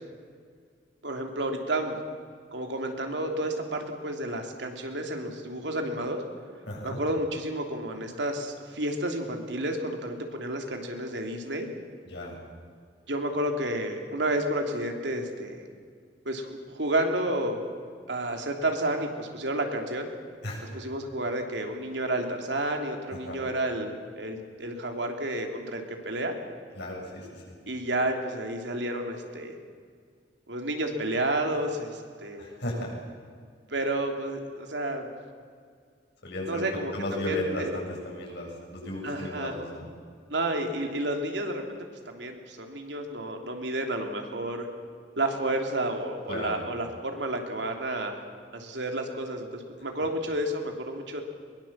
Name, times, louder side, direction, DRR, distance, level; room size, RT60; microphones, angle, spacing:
voice 1, 1.0-2.0 2.5-6.2 6.8-11.7 13.1-15.6 16.2-17.7 18.1-20.1 20.7-26.3 27.7-29.5 30.5-32.5 33.7-35.1 36.5-36.9 37.2-37.8 39.0-39.5 40.3-41.8 42.1-44.7 45.2-48.2 48.5-51.2, right 1 dB, 70° right, 3 dB, 3.1 m, -31 dB
voice 2, 6.7-7.0 12.0-12.4 20.4-20.6 23.1-23.4 26.7-27.6 32.4-33.0 36.2-36.7 36.9-39.9 46.3-46.6, left 1 dB, 70° left, -2 dB, 7.8 m, -35 dB
22.5 x 22.0 x 7.5 m, 2.1 s
head